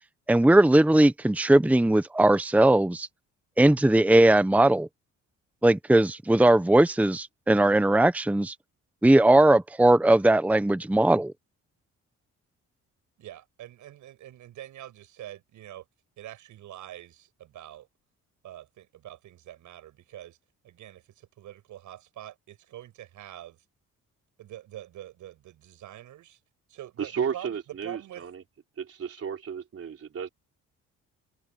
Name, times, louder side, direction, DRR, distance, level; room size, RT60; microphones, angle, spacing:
voice 1, 0.3-3.1 3.6-4.9 5.6-8.5 9.0-11.3, right 1 dB, 5° right, 0.9 m, -19 dB
voice 2, 13.2-15.8 16.2-17.9 18.4-20.4 20.6-23.6 24.4-26.4 26.7-27.6 27.8-28.2, right 13 dB, 80° right, 7.1 m, -45 dB
voice 3, 27.0-28.4 28.8-30.3, right 7 dB, 50° right, 3.9 m, -33 dB
cardioid pair, 90°, 30 cm